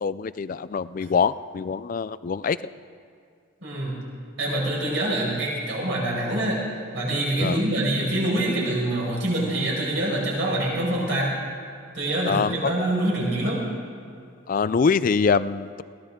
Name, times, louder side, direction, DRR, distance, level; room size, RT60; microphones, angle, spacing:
voice 1, 0.0-2.6 7.4-7.6 12.3-12.7 14.5-15.8, left 5 dB, 40° left, 16 dB, 0.3 m, -24 dB
voice 2, 3.6-4.0 4.4-6.6 6.9-11.3 11.9-13.6, right 1 dB, 60° right, -4 dB, 5.2 m, -25 dB
21.5 x 16.5 x 3.7 m, 2.4 s
head